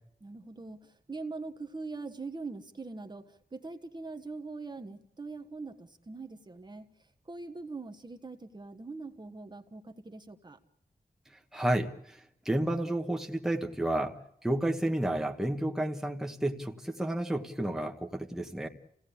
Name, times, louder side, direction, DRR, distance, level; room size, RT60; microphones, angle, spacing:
voice 1, 0.2-6.9 7.3-10.6, right 3 dB, 30° right, 7 dB, 1.4 m, -42 dB
voice 2, 11.5-14.2 14.4-18.7, right 1 dB, 5° right, 2 dB, 1.3 m, -31 dB
28.0 x 17.5 x 8.6 m, 0.74 s
wide cardioid pair, 130°, 15 cm